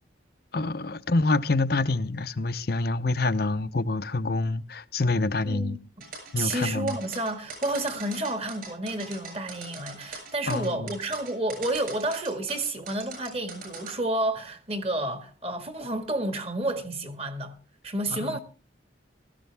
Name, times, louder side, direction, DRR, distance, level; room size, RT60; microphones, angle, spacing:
voice 1, 0.5-5.8 6.3-7.0 10.5-10.9 18.1-18.4, left 2 dB, 55° left, 0.7 m, -27 dB
voice 2, 5.5-5.8 6.4-17.6 17.8-18.4, right 1 dB, 30° right, 1.8 m, -30 dB
sound 1, 6.0-13.9, right 4 dB, 50° right, 7.1 m, -41 dB
17.0 x 14.0 x 3.5 m
head